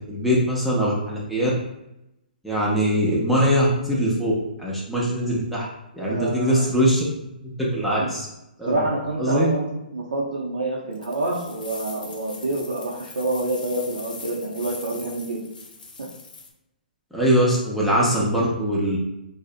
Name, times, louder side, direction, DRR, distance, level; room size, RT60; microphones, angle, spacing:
voice 1, 0.1-1.5 2.4-4.3 4.6-5.6 5.9-7.0 7.6-8.3 8.6-8.7 9.2-9.5 17.1-19.0, equal, ahead, -6 dB, 0.5 m, -22 dB
voice 2, 6.0-6.6 8.7-15.5 16.0-16.1, right 2 dB, 80° right, -6 dB, 0.5 m, -27 dB
sound 1, 10.9-16.5, left 4 dB, 65° left, 0.5 m, -42 dB
2.6 x 2.0 x 2.4 m, 0.87 s
hypercardioid pair, 130°, 5 cm